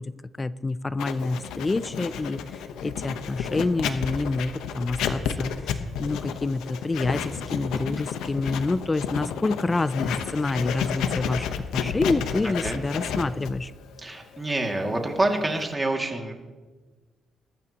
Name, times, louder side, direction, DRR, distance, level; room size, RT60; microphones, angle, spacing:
voice 1, 0.0-13.7, left 3 dB, 25° left, 16 dB, 0.4 m, -28 dB
Writing, 1.0-15.7, left 7 dB, 90° left, 0.9 m, -31 dB
voice 2, 12.4-12.8 14.0-16.3, right 2 dB, 20° right, 2 dB, 2.2 m, -27 dB
21.5 x 12.0 x 3.0 m, 1.3 s
cardioid pair, 90°, 0 cm